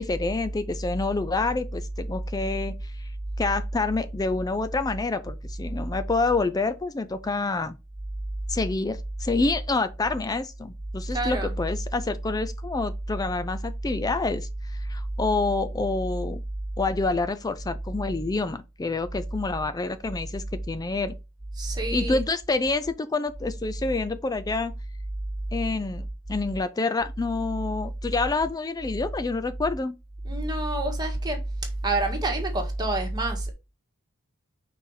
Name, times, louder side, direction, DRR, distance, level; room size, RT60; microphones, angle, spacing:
voice 1, 0.0-3.1 3.4-7.8 8.5-16.4 16.8-21.1 21.9-24.8 25.5-29.9, left 3 dB, 15° left, 0.3 m, -28 dB
voice 2, 11.1-11.5 21.5-22.2 30.2-31.4 31.8-33.5, right 2 dB, 20° right, 1.6 m, -27 dB
5.6 x 4.2 x 4.8 m
head